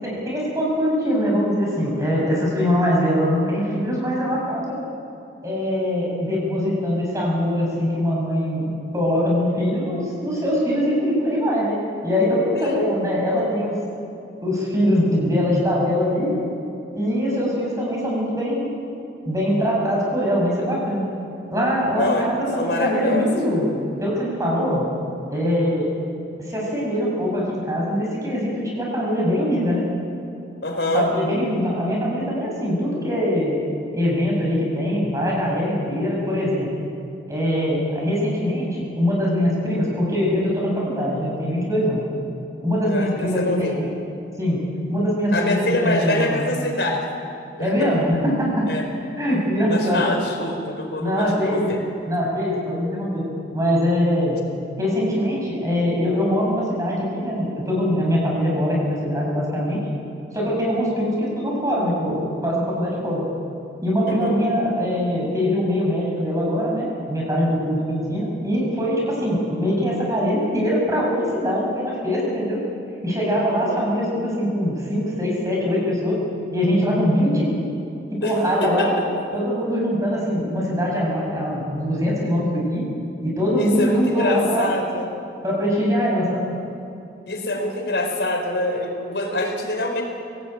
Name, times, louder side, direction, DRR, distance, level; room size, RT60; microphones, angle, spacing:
voice 1, 0.0-4.8 5.4-11.8 12.0-13.8 14.4-16.4 16.9-18.7 19.3-21.0 21.5-23.7 24.0-24.9 25.3-25.9 26.5-29.8 30.9-33.6 33.9-36.7 37.3-42.0 42.6-43.9 44.4-44.6 44.9-45.6 45.8-46.4 47.6-48.7 49.2-50.0 51.0-51.7 52.1-53.3 53.5-54.4 54.8-59.8 60.3-63.2 63.8-72.6 73.0-76.2 76.5-77.5 78.1-78.9 79.3-82.8 83.2-84.7 85.4-86.5, equal, 20° right, -3 dB, 7.1 m, -22 dB
voice 2, 12.5-12.9 21.9-22.3 22.6-23.3 30.6-31.1 42.8-43.8 45.3-47.0 47.6-47.9 48.7-48.8 49.7-51.8 64.0-64.4 73.5-73.8 78.2-78.3 78.6-79.1 83.6-85.1 87.3-90.0, left 1 dB, 70° left, 3 dB, 4.6 m, -25 dB
25.5 x 17.0 x 9.1 m, 2.7 s
head